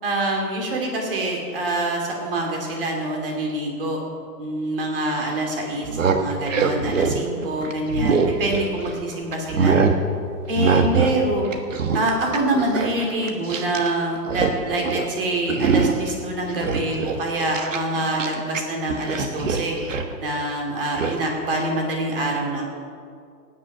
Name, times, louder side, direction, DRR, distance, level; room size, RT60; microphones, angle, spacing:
voice 1, 0.0-4.0 4.4-9.8 10.5-11.5 11.9-19.8 20.2-22.7, right 1 dB, 35° right, 1 dB, 2.7 m, -25 dB
sound 1, 5.7-9.0 9.3-10.0 10.6-11.2 11.4-13.9 14.1-14.6 14.8-15.1 15.5-16.1 16.5-18.6 18.9-20.1 21.0-21.2, right 5 dB, 50° right, 1.3 m, -23 dB
15.5 x 9.7 x 7.2 m, 2.3 s
hypercardioid pair, 175°, 49 cm